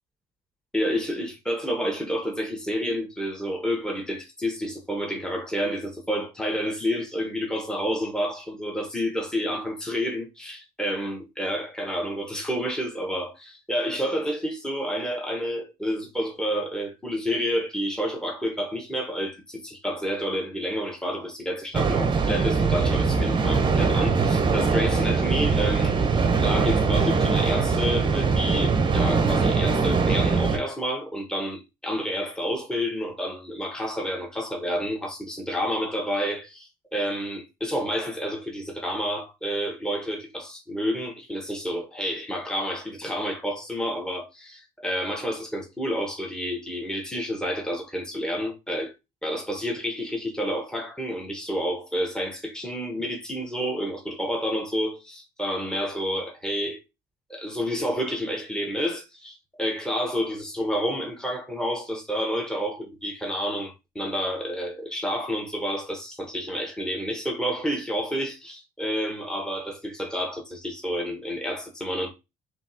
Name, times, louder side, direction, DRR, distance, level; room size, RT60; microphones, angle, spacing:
voice 1, 0.7-48.9 49.2-56.8 57.3-72.1, equal, 5° left, 1.2 m, -29 dB
sound 1, 21.7-30.6, right 4 dB, 30° right, 0.8 m, -22 dB
5.6 x 2.9 x 2.8 m
cardioid pair, 110°, 17 cm